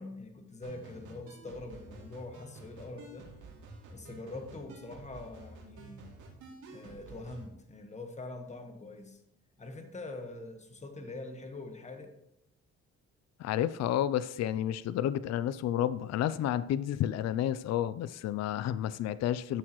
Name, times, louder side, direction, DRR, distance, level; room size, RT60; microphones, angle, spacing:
voice 1, 0.0-3.3 3.9-6.1 6.7-9.2 9.6-12.1, left 2 dB, 25° left, 5 dB, 1.3 m, -44 dB
sound 1, 0.6-7.5, right 2 dB, 75° right, 2.7 m, -50 dB
voice 2, 13.4-19.6, left 11 dB, 60° left, 16 dB, 0.4 m, -31 dB
13.0 x 6.4 x 3.1 m, 0.84 s
cardioid pair, 90°, 30 cm